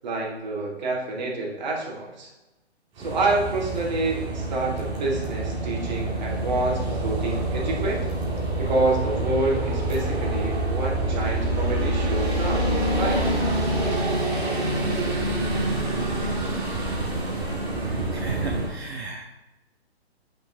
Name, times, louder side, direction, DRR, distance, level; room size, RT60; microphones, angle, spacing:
voice 1, 0.0-2.3 3.0-8.0 8.6-12.7 13.0-13.3, right 2 dB, 40° right, -2 dB, 2.4 m, -27 dB
sound 1, 3.0-18.7, right 1 dB, 15° right, 1.8 m, -26 dB
voice 2, 18.1-19.3, right 3 dB, 70° right, 1 dB, 1.0 m, -34 dB
10.5 x 5.9 x 3.6 m, 1.0 s
figure-of-eight pair, 130°, 33 cm